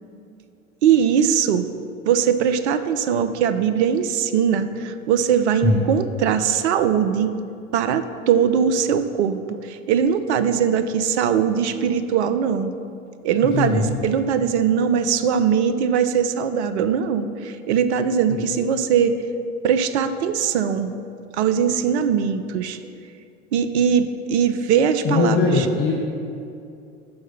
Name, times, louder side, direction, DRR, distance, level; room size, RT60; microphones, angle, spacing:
voice 1, 0.8-1.7 2.0-7.3 7.7-12.7 13.2-19.1 19.6-20.9 21.3-22.8 23.5-25.7, right 7 dB, 60° right, 10 dB, 0.5 m, -21 dB
voice 2, 13.4-13.8 18.3-18.4 25.0-25.9, left 4 dB, 35° left, -3 dB, 1.0 m, -20 dB
6.5 x 4.6 x 5.6 m, 2.6 s
figure-of-eight pair, 75°, 38 cm